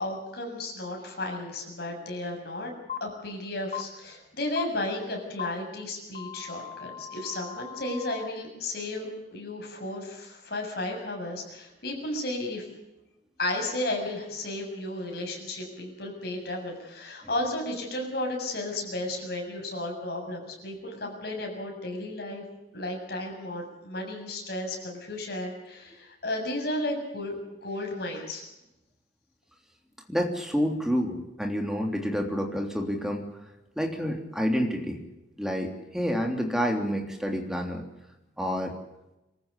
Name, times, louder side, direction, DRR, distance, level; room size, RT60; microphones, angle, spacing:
voice 1, 0.0-2.7 3.0-12.7 13.4-22.4 22.7-27.3 27.6-28.4, left 1 dB, 60° left, 1 dB, 7.3 m, -33 dB
sound 1, 2.9-3.0 3.7-3.8 4.6-4.7 5.4-5.5 6.1-8.3, left 9 dB, 40° left, 1.0 m, -38 dB
voice 2, 30.1-33.2 33.8-35.0 35.4-37.8 38.4-38.7, equal, 5° right, 2 dB, 3.2 m, -28 dB
25.0 x 15.0 x 8.4 m, 0.95 s
head